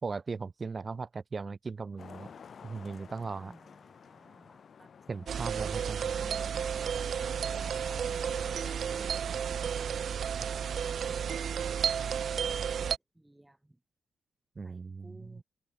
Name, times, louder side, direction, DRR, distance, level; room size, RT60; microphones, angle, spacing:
voice 1, 0.0-2.3 2.6-3.5 5.1-6.1 14.6-15.1, right 4 dB, 30° right, 1.0 m, -38 dB
Traffic noise roadway noise, 2.0-8.8, left 7 dB, 45° left, 3.4 m, -52 dB
voice 2, 3.4-4.9 5.3-7.2 7.6-8.1 8.8-10.2 12.6-13.8 14.6-15.4, right 1 dB, 5° right, 2.8 m, -56 dB
sound 1, 5.3-13.0, right 7 dB, 55° right, 0.5 m, -32 dB
wide cardioid pair, 170°, 0 cm